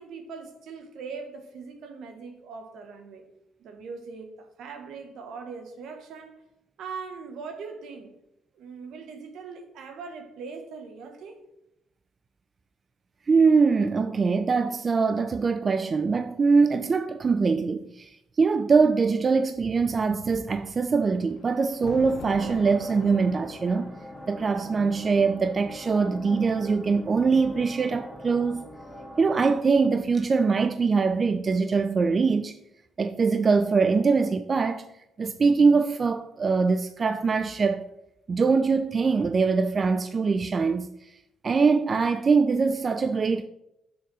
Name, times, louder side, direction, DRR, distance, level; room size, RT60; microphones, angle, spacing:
voice 1, 0.0-3.3 3.6-6.4 6.8-8.1 8.5-11.5, right 5 dB, 80° right, 1.2 m, -41 dB
voice 2, 13.3-23.9 24.3-28.6 29.2-32.5 33.0-34.8 35.2-37.9 38.3-40.9 41.4-43.5, right 4 dB, 40° right, 0.4 m, -23 dB
Thunder, 20.6-27.8 28.8-30.6, left 6 dB, 70° left, 0.9 m, -46 dB
sound 1, 22.4-29.4, equal, 5° left, 2.6 m, -42 dB
6.9 x 4.0 x 6.1 m
cardioid pair, 90°, 0 cm